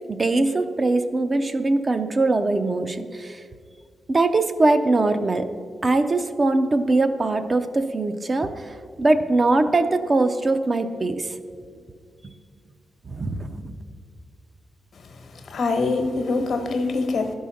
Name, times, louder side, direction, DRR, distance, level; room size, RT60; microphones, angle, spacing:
voice 1, 0.1-3.4 4.1-5.5 5.8-11.3 13.1-13.7, right 2 dB, 30° right, 8 dB, 0.5 m, -22 dB
voice 2, 15.5-17.3, left 3 dB, 65° left, 6 dB, 1.1 m, -24 dB
11.0 x 5.5 x 6.3 m, 2.1 s
wide cardioid pair, 120°, 0 cm